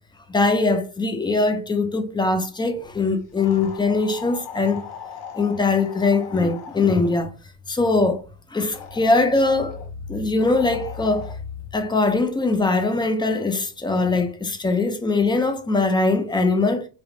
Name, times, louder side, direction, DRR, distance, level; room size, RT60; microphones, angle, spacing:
voice 1, 0.3-4.8 5.3-7.3 7.7-8.2 8.5-9.8 10.1-11.3 11.7-16.9, left 3 dB, 10° left, 0.4 m, -21 dB
sound 1, 3.4-7.3 8.7-9.9 10.4-11.4, left 7 dB, 60° left, 1.4 m, -39 dB
3.5 x 2.3 x 3.6 m
supercardioid pair, 110°, 45 cm